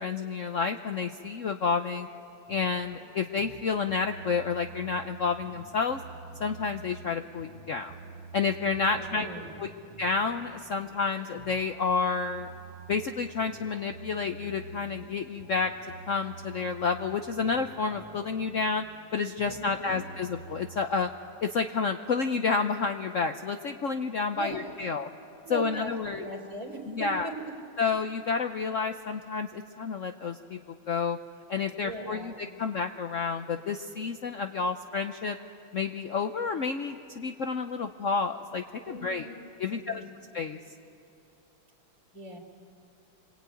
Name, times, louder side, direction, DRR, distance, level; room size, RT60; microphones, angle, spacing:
voice 1, 0.0-2.1 2.5-6.0 6.4-7.9 8.3-9.3 9.6-9.7 10.0-12.5 12.9-15.7 16.1-18.8 19.1-21.1 21.4-25.1 25.5-26.2 26.9-27.3 27.8-30.6 30.9-31.2 31.5-35.4 35.7-39.3 39.6-40.0 40.3-40.6, left 5 dB, 80° left, 6 dB, 0.6 m, -30 dB
sound 1, 2.5-20.9, right 6 dB, 85° right, 2.1 m, -48 dB
voice 2, 8.9-9.5 19.4-20.0 24.3-24.8 25.4-27.5 31.8-32.4 38.9-39.4 39.7-40.1 42.1-42.4, right 1 dB, 40° right, 1 dB, 3.9 m, -39 dB
27.0 x 21.5 x 9.1 m, 2.9 s
omnidirectional pair, 2.4 m